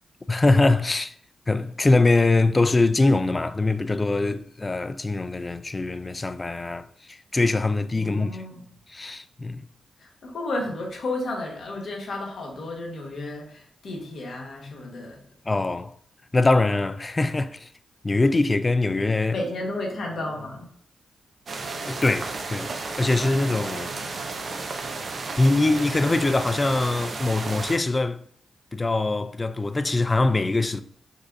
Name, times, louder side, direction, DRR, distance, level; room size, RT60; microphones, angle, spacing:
voice 1, 0.3-1.1 1.5-8.4 8.9-9.6 15.5-15.9 16.3-17.7 18.0-19.4 21.9-22.7 23.0-23.9 25.4-28.2 28.7-30.8, left 2 dB, 30° left, 0.4 m, -23 dB
voice 2, 7.9-8.6 10.0-15.2 19.3-20.7, left 2 dB, 70° left, 1.4 m, -32 dB
sound 1, 21.5-27.8, right 3 dB, 60° right, 0.7 m, -33 dB
5.3 x 2.5 x 3.7 m
cardioid pair, 55°, 0 cm